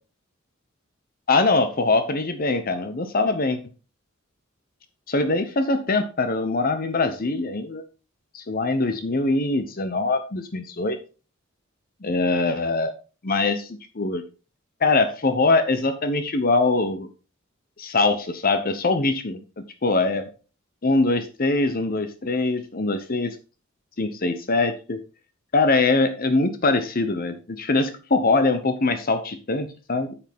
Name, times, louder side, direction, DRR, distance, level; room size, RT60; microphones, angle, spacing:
voice 1, 1.3-3.6 5.1-7.8 8.3-11.0 12.0-12.9 13.2-14.2 14.8-17.1 17.8-20.2 20.8-23.3 24.0-25.0 25.5-30.2, left 3 dB, 45° left, 9 dB, 0.9 m, -23 dB
9.2 x 7.1 x 3.6 m, 0.33 s
head